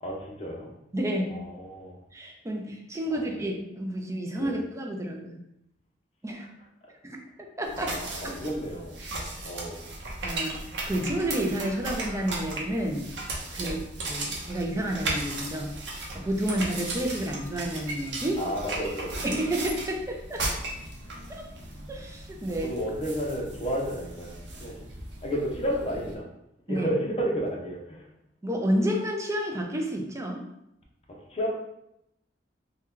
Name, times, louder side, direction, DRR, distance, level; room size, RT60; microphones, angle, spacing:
voice 1, 0.0-0.7 1.3-2.0 3.1-3.5 4.4-4.6 7.8-9.0 9.4-9.8 13.6-13.8 18.4-19.2 22.6-24.9 25.2-26.3 26.7-28.0 31.1-31.5, equal, 35° left, -1 dB, 0.7 m, -32 dB
voice 2, 0.9-1.4 2.1-5.4 6.2-6.5 7.0-7.2 7.6-7.9 8.2-8.4 10.2-13.1 13.5-13.8 14.0-15.7 16.1-18.4 19.2-20.4 21.3-21.5 21.9-22.8 26.7-26.9 28.4-30.4, right 1 dB, 15° right, 1 dB, 0.4 m, -30 dB
sound 1, 7.6-26.2, right 2 dB, 75° right, 0.7 m, -36 dB
2.8 x 2.3 x 3.6 m, 0.82 s
head